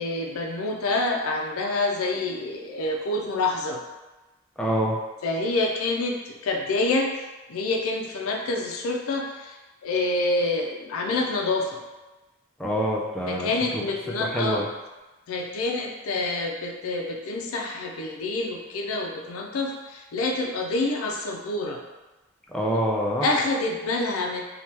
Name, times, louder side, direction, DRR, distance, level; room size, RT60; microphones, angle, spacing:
voice 1, 0.0-3.8 5.2-7.1 7.5-9.6 9.8-11.8 13.3-14.6 15.3-21.8 23.2-24.4, left 2 dB, 75° left, 1 dB, 0.4 m, -27 dB
voice 2, 4.6-4.9 12.6-13.8 14.3-14.7 22.5-23.3, equal, 5° left, -2 dB, 0.3 m, -26 dB
2.8 x 2.2 x 3.2 m, 1.1 s
head